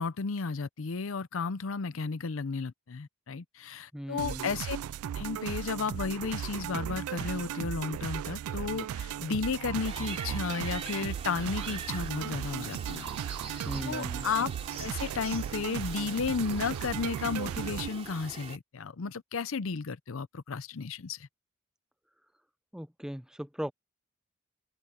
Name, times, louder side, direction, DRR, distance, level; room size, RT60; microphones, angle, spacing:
voice 1, 0.0-4.8 5.1-13.1 13.4-14.5 14.8-21.3, left 5 dB, 65° left, 0.6 m, -33 dB
voice 2, 3.9-4.5 13.6-14.3 22.7-23.7, equal, 5° right, 0.6 m, -38 dB
sound 1, 4.2-17.9, right 9 dB, 90° right, 0.3 m, -36 dB
sound 2, 9.7-18.6, right 5 dB, 30° right, 2.7 m, -43 dB
open air
head